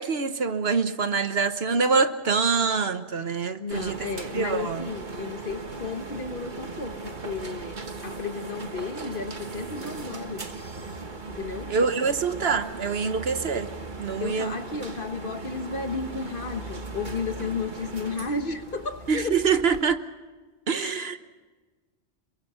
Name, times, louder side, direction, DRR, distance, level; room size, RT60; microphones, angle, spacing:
voice 1, 0.0-4.0 4.3-4.9 11.7-13.7 14.0-14.6 19.1-20.0 20.7-21.2, right 5 dB, 65° right, 1.3 m, -25 dB
voice 2, 3.6-10.5 11.3-11.7 14.2-19.4 20.7-21.1, left 4 dB, 50° left, 1.5 m, -33 dB
sound 1, 3.7-19.8, right 3 dB, 45° right, 1.7 m, -38 dB
27.0 x 23.0 x 5.6 m
omnidirectional pair, 1.1 m